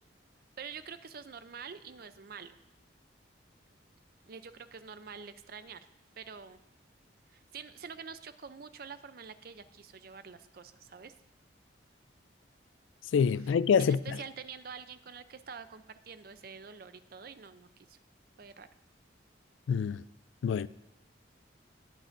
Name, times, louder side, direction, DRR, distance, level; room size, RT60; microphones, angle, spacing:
voice 1, 0.6-2.6 4.3-5.9 6.2-6.6 7.3-11.1 13.4-18.0 18.4-18.7, right 6 dB, 50° right, 0.5 m, -47 dB
voice 2, 13.1-14.2 19.7-20.0 20.4-20.7, left 6 dB, 75° left, 0.3 m, -26 dB
20.5 x 7.5 x 2.6 m
head